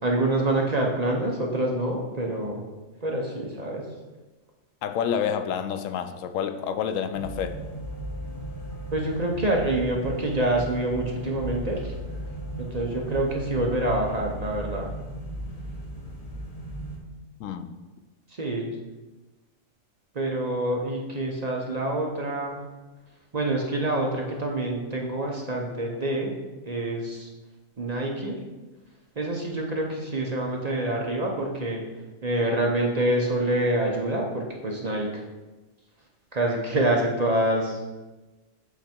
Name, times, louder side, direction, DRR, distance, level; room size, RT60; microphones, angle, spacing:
voice 1, 0.0-2.6 3.0-3.9 8.9-11.9 12.6-14.9 18.3-18.7 20.1-22.6 23.3-26.3 26.7-27.3 27.8-28.4 29.2-31.8 32.2-35.2 36.3-37.8, right 1 dB, 35° right, 0 dB, 0.7 m, -26 dB
voice 2, 4.8-7.6 17.4-17.8, left 8 dB, 80° left, 9 dB, 0.9 m, -28 dB
sound 1, 7.1-17.0, right 1 dB, 30° left, 1.0 m, -36 dB
8.2 x 3.5 x 4.3 m, 1.2 s
omnidirectional pair, 1.4 m